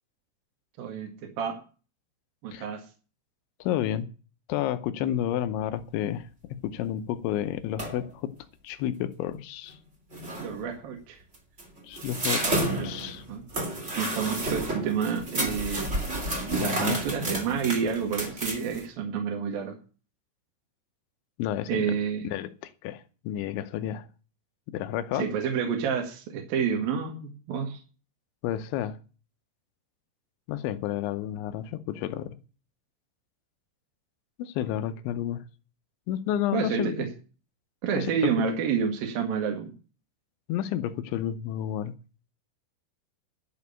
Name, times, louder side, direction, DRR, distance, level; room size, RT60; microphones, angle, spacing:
voice 1, 0.8-1.6 2.4-2.9 10.4-11.2 12.4-13.4 14.0-15.9 16.6-19.8 21.7-22.3 25.2-27.8 36.5-37.1 37.8-39.7, right 6 dB, 60° right, 3.1 m, -29 dB
voice 2, 3.6-4.1 4.5-8.4 8.6-9.8 11.9-13.2 16.6-17.0 21.4-22.0 22.2-24.1 24.7-25.3 28.4-29.0 30.5-32.4 34.4-35.4 36.1-37.0 38.0-38.3 40.5-42.0, left 11 dB, 80° left, 3.0 m, -31 dB
sound 1, 7.8-8.1 9.7-9.8 10.1-10.6 11.3-18.8, right 1 dB, 20° right, 2.3 m, -31 dB
12.0 x 6.5 x 8.4 m
omnidirectional pair, 5.7 m